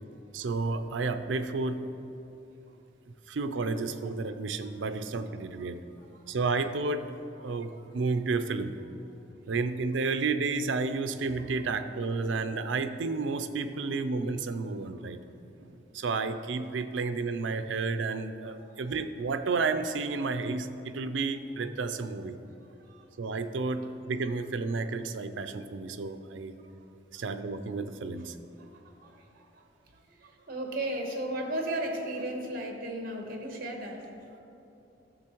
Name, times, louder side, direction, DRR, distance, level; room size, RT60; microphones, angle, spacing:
voice 1, 0.3-1.9 3.3-5.8 6.3-7.1 7.4-8.8 9.5-22.4 23.2-26.5 27.1-28.4, right 4 dB, 80° right, 10 dB, 0.5 m, -31 dB
voice 2, 18.6-18.9 22.9-23.0 27.1-27.2 29.0-29.2 30.2-34.0, right 1 dB, 50° right, 2 dB, 1.2 m, -35 dB
13.5 x 6.9 x 3.0 m, 2.9 s
head